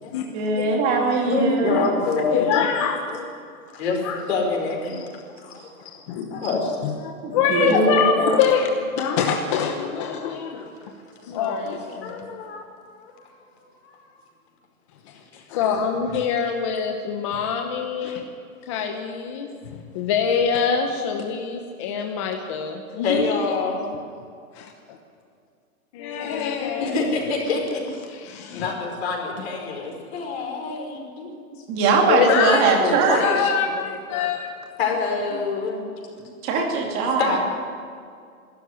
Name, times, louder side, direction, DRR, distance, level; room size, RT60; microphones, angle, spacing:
voice 1, 0.3-1.9 4.9-5.1 7.2-8.1 31.7-33.2 36.4-37.4, right 4 dB, 20° right, 1 dB, 2.6 m, -21 dB
voice 2, 1.3-2.5 3.1-6.0 6.3-6.8 12.0-12.7 13.0-13.5 13.8-14.2 15.3-15.4 23.0-23.9 26.8-28.0 28.5-31.5 32.7-33.4 34.8-35.8 37.2-37.4, left 4 dB, 45° left, 1 dB, 5.2 m, -27 dB
voice 3, 2.3-3.0 3.9-4.2 6.1-6.4 6.8-10.7 11.3-12.3 15.5-18.2 18.7-19.5 19.9-23.6 24.6-24.7 25.9-27.2 28.1-28.9 32.1-34.5, left 6 dB, 20° left, 3 dB, 0.9 m, -24 dB
22.0 x 13.0 x 9.6 m, 2.2 s
hypercardioid pair, 165°, 43 cm